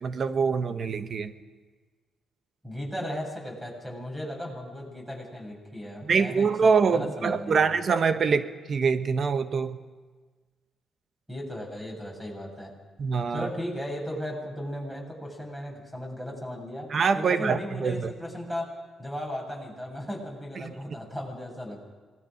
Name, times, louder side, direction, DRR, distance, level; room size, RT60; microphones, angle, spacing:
voice 1, 0.0-1.3 6.0-9.8 13.0-13.5 16.9-18.1 20.6-20.7, right 5 dB, 55° right, 10 dB, 1.2 m, -25 dB
voice 2, 2.6-7.6 11.3-12.7 13.3-18.7 19.0-21.9, equal, 5° right, 0 dB, 7.7 m, -36 dB
26.5 x 20.0 x 5.2 m, 1.4 s
supercardioid pair, 65°, 0 cm